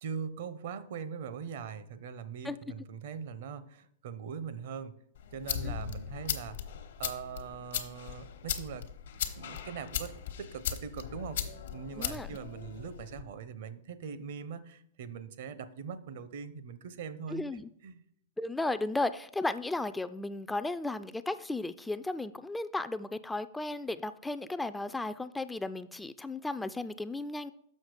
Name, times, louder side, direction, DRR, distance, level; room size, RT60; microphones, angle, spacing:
voice 1, 0.0-4.9 5.3-6.6 7.0-8.9 9.4-11.4 11.7-17.4 17.8-18.0, right 6 dB, 60° right, 13 dB, 0.7 m, -41 dB
sound 1, 5.1-13.2, left 9 dB, 70° left, 1.0 m, -38 dB
voice 2, 12.0-12.3 17.3-17.7 18.4-27.5, left 2 dB, 5° left, 12 dB, 0.3 m, -35 dB
6.5 x 5.9 x 4.9 m, 0.68 s
hypercardioid pair, 115°, 0 cm